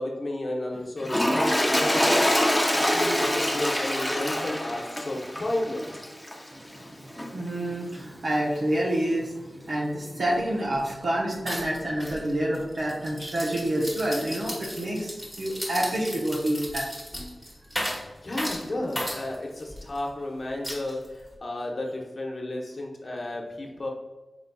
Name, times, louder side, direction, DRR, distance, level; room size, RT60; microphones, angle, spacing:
voice 1, 0.0-2.3 2.9-5.8 18.2-23.9, left 1 dB, 45° left, -1 dB, 0.9 m, -32 dB
Toilet flush, 1.0-6.5 7.2-7.3, left 1 dB, 10° left, 0.6 m, -25 dB
voice 2, 6.5-17.0, right 1 dB, 65° right, -4 dB, 0.9 m, -28 dB
sound 1, 10.3-10.4 10.7-11.0 11.5-20.0 20.6-21.3, equal, 10° right, 1.3 m, -36 dB
5.2 x 3.9 x 2.3 m, 1.1 s
wide cardioid pair, 100°, 0 cm